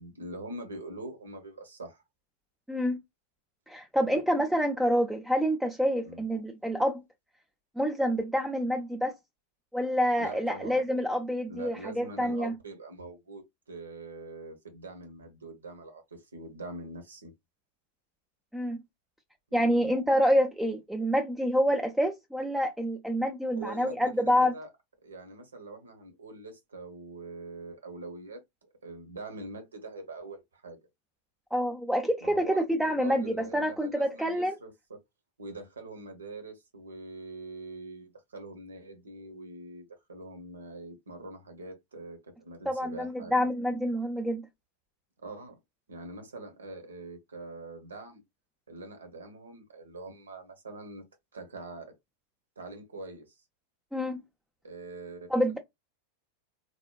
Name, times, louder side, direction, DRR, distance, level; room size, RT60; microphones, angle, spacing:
voice 1, 0.0-2.0 4.1-4.2 6.0-6.2 10.2-10.8 11.5-17.3 19.5-19.9 23.6-24.7 25.0-28.4 28.8-30.8 32.2-35.0 35.4-43.3 45.2-45.6 45.9-48.2 48.7-51.0 51.3-51.9 52.6-53.4 54.6-55.3, right 2 dB, 70° right, 0.9 m, -43 dB
voice 2, 2.7-3.0 3.7-7.0 7.8-9.2 9.7-12.5 18.5-18.8 19.5-24.5 31.5-34.6 42.7-44.5 53.9-54.2 55.3-55.6, equal, ahead, 0.4 m, -27 dB
3.4 x 2.1 x 2.3 m
figure-of-eight pair, 90°, 0 cm